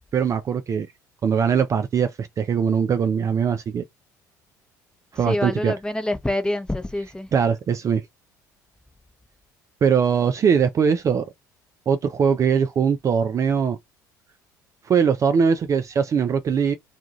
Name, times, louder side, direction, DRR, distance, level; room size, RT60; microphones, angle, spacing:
voice 1, 0.1-0.9 1.2-3.8 5.1-5.7 7.3-8.0 9.8-11.3 11.9-13.8 14.9-16.7, right 7 dB, 35° right, 0.4 m, -21 dB
voice 2, 5.2-7.3, left 1 dB, 10° left, 0.8 m, -26 dB
2.4 x 2.3 x 2.9 m
figure-of-eight pair, 60°, 10 cm